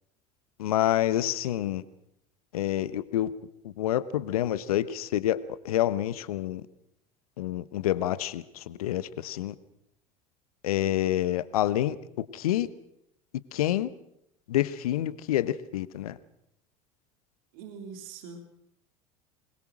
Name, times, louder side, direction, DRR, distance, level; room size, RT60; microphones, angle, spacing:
voice 1, 0.6-1.8 2.5-3.3 3.6-6.6 7.4-9.5 10.6-12.7 13.5-13.9 14.5-16.2, left 13 dB, 75° left, 16 dB, 1.1 m, -28 dB
voice 2, 17.5-18.4, right 5 dB, 65° right, 5 dB, 3.1 m, -42 dB
23.5 x 21.5 x 6.2 m, 0.78 s
hypercardioid pair, 75°, 19 cm